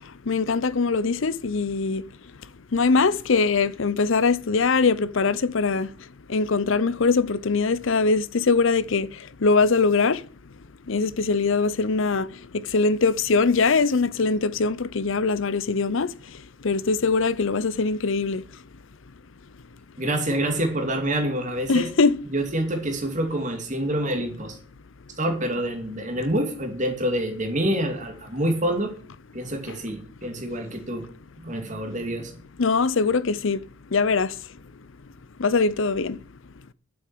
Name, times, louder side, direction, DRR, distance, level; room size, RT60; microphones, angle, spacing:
voice 1, 0.3-2.0 2.7-5.9 6.3-9.1 9.4-10.2 10.9-12.3 12.5-16.1 16.6-18.4 21.7-22.2 32.6-33.6 33.9-34.3 35.4-36.2, left 4 dB, 70° left, 0.7 m, -22 dB
voice 2, 20.0-21.9 22.3-24.6 25.2-28.9 29.3-31.1 31.4-32.3, right 1 dB, 35° right, 2.7 m, -27 dB
10.5 x 7.7 x 8.5 m
head